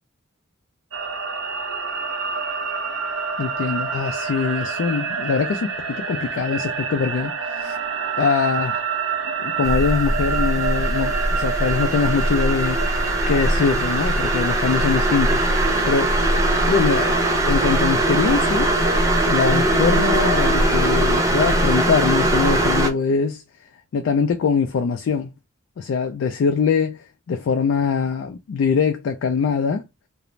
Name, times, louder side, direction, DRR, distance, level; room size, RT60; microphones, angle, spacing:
sound 1, 0.9-20.5, right 5 dB, 70° right, 0.6 m, -27 dB
voice 1, 3.4-7.8 8.2-8.9 9.2-15.5 15.8-16.2 16.7-18.7 19.3-23.4 23.9-25.3 25.8-29.8, left 5 dB, 65° left, 0.3 m, -23 dB
sound 2, 9.6-22.9, right 1 dB, 15° right, 0.5 m, -21 dB
2.5 x 2.0 x 3.0 m
head